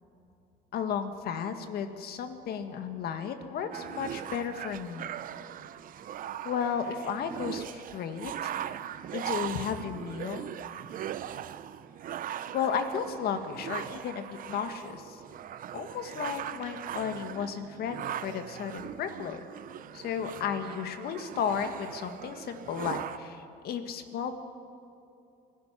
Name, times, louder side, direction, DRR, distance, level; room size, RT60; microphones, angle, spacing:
voice 1, 0.7-5.1 6.4-8.6 9.1-10.5 12.5-15.2 15.7-19.4 19.9-24.3, left 7 dB, 70° left, 8 dB, 1.7 m, -34 dB
sound 1, 3.7-23.2, right 10 dB, 55° right, 0.7 m, -40 dB
25.5 x 17.0 x 6.0 m, 2.7 s
cardioid pair, 110°, 17 cm